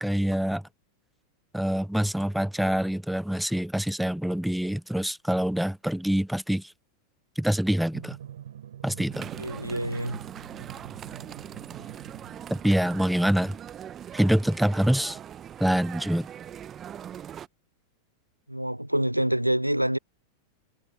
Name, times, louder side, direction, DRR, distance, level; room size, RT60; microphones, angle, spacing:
voice 1, 0.0-0.6 1.5-6.7 7.4-8.2 8.8-9.3 12.6-13.6 14.1-15.2 15.6-16.3, equal, ahead, 0.3 m, -25 dB
Drum, 7.9-13.0, right 10 dB, 65° right, 3.2 m, -45 dB
sound 1, 9.1-17.5, right 9 dB, 25° right, 0.9 m, -41 dB
voice 2, 9.4-10.2 18.5-20.0, right 1 dB, 90° right, 0.4 m, -26 dB
figure-of-eight pair, 90°, 0 cm